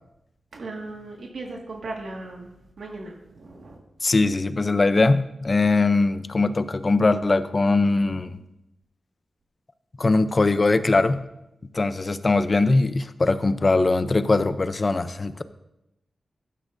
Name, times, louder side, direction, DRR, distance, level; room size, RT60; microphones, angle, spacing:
voice 1, 0.5-4.1 10.9-11.0, right 2 dB, 70° right, -1 dB, 1.9 m, -38 dB
voice 2, 4.0-8.4 10.0-11.2 11.7-15.4, left 3 dB, 35° left, 12 dB, 0.6 m, -21 dB
15.5 x 12.0 x 2.7 m, 0.88 s
wide cardioid pair, 90°, 0 cm